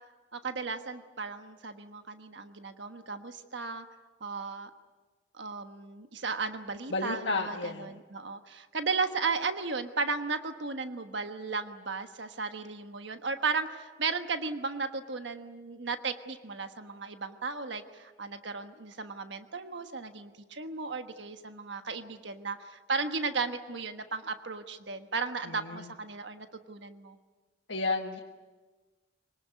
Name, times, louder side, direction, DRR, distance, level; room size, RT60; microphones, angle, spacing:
voice 1, 0.3-3.8 4.2-4.7 5.4-27.2, right 4 dB, 70° right, 8 dB, 1.3 m, -35 dB
voice 2, 6.9-8.0 25.4-25.9 27.7-28.2, left 3 dB, 75° left, 1 dB, 1.5 m, -32 dB
25.0 x 19.0 x 9.4 m, 1.3 s
head